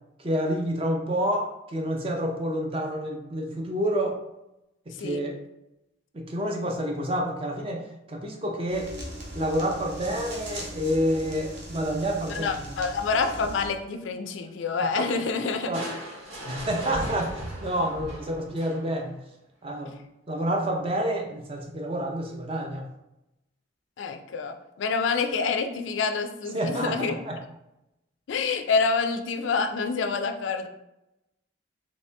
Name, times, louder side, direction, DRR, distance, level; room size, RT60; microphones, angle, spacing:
voice 1, 0.2-4.2 4.9-5.4 6.1-8.9 9.3-12.8 14.8-15.1 15.7-15.9 16.4-19.1 19.6-19.9 20.3-22.8 26.5-27.4, equal, 30° right, 2 dB, 0.5 m, -28 dB
sound 1, 8.7-13.7, right 1 dB, 60° right, 0.9 m, -39 dB
voice 2, 12.3-15.7 24.0-27.2 28.3-30.7, left 4 dB, 75° left, 7 dB, 0.4 m, -27 dB
Crushing, 15.7-19.1, equal, 90° right, 1.4 m, -37 dB
3.1 x 2.7 x 3.3 m, 0.90 s
head